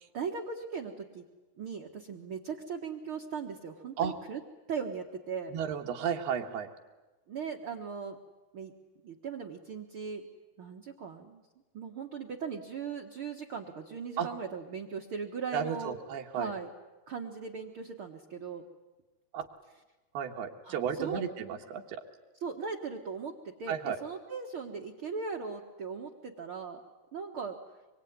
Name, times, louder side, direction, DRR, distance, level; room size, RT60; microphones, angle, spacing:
voice 1, 0.1-1.2 1.6-4.4 4.7-5.5 7.3-8.2 8.5-8.7 9.0-10.3 10.6-11.4 11.7-16.0 16.3-16.7 17.1-18.6 20.6-21.2 22.4-26.8 27.1-27.6, right 5 dB, 55° right, 2 dB, 1.6 m, -38 dB
voice 2, 5.5-6.7 14.2-14.3 15.5-16.5 19.3-19.5 20.2-21.8 23.7-24.0, right 8 dB, 80° right, 3 dB, 3.7 m, -33 dB
25.0 x 23.5 x 9.6 m, 1.1 s
omnidirectional pair, 4.5 m